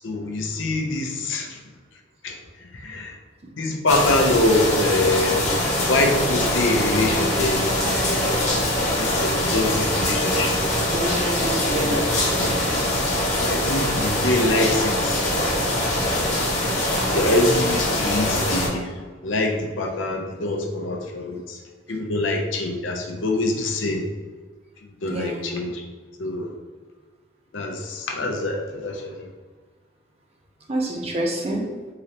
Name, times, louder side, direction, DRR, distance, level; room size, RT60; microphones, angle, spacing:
voice 1, 0.0-1.6 2.2-2.4 2.7-3.1 3.6-5.4 5.9-7.7 8.1-8.3 9.0-10.6 11.9-12.0 12.3-12.5 13.3-15.2 16.1-16.4 17.0-21.6 21.9-24.1 25.0-25.8 26.2-26.5 27.5-29.2, left 2 dB, 80° left, 2 dB, 0.6 m, -24 dB
sound 1, 3.9-18.7, left 1 dB, 35° left, 0.9 m, -23 dB
voice 2, 10.9-12.0 25.1-25.5 30.7-31.6, right 1 dB, 30° right, 0 dB, 0.5 m, -27 dB
3.8 x 3.2 x 2.8 m, 1.4 s
head